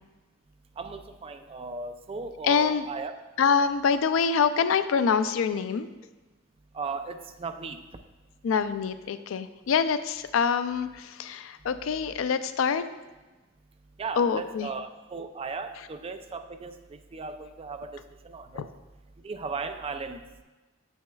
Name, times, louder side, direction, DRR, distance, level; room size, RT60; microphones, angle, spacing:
voice 1, 0.8-3.1 6.8-7.8 14.0-16.7 17.1-18.0 18.3-18.6 19.2-20.2, right 4 dB, 30° right, 8 dB, 0.4 m, -36 dB
voice 2, 2.4-2.9 3.4-5.9 8.4-12.8 14.2-14.7 18.5-18.7, left 6 dB, 90° left, 11 dB, 0.4 m, -25 dB
8.0 x 6.2 x 2.3 m, 1.2 s
head